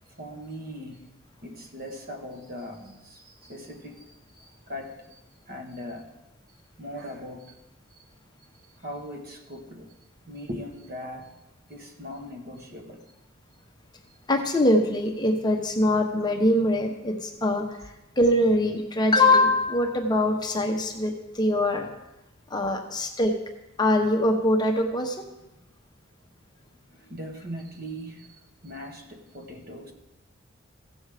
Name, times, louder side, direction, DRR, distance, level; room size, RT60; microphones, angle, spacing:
voice 1, 0.2-1.0 1.4-5.2 5.5-6.1 6.8-7.6 7.9-8.0 8.8-9.9 10.3-11.3 11.7-13.0 26.9-29.9, equal, 45° right, 3 dB, 1.3 m, -40 dB
voice 2, 14.3-21.9 22.5-23.3 23.8-25.2, left 1 dB, 20° left, 3 dB, 0.9 m, -23 dB
15.5 x 6.2 x 4.9 m, 0.98 s
head